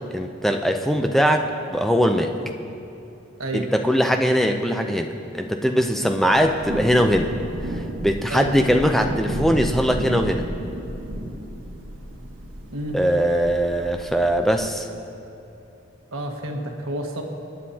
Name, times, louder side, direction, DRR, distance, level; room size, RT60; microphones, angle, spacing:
voice 1, 0.1-2.4 3.5-7.3 7.6-10.5 12.9-14.9, equal, ahead, 4 dB, 0.5 m, -21 dB
Thunder / Rain, 6.2-14.7, right 1 dB, 70° right, 1.6 m, -32 dB
voice 2, 16.1-17.2, right 1 dB, 90° right, 2 dB, 1.4 m, -29 dB
25.5 x 9.6 x 2.8 m, 2.8 s
head